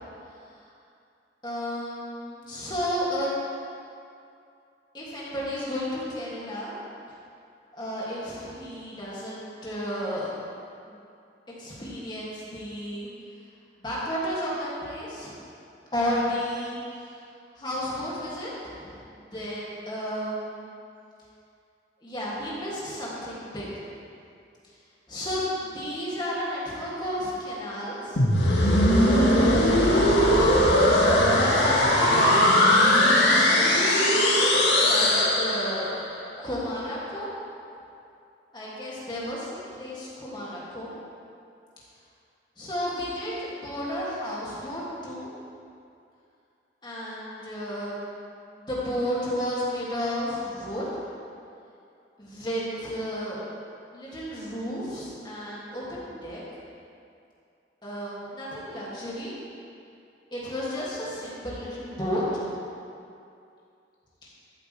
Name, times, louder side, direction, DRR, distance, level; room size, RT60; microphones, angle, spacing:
voice 1, 1.4-3.3 4.9-6.7 7.7-10.3 10.8-11.0 11.6-13.1 13.8-15.4 15.9-17.2 17.5-20.7 22.0-23.9 25.1-28.2 29.0-31.1 31.5-32.7 33.2-34.1 34.8-35.9 36.4-37.3 38.5-40.9 42.6-45.3 46.8-48.0 48.5-50.8 52.2-53.4 53.9-56.4 57.8-59.3 60.3-62.4 64.2-64.3, equal, 25° left, -7 dB, 2.5 m, -32 dB
sound 1, 28.2-36.0, left 1 dB, 75° left, 1.7 m, -20 dB
13.5 x 8.4 x 3.4 m, 2.5 s
head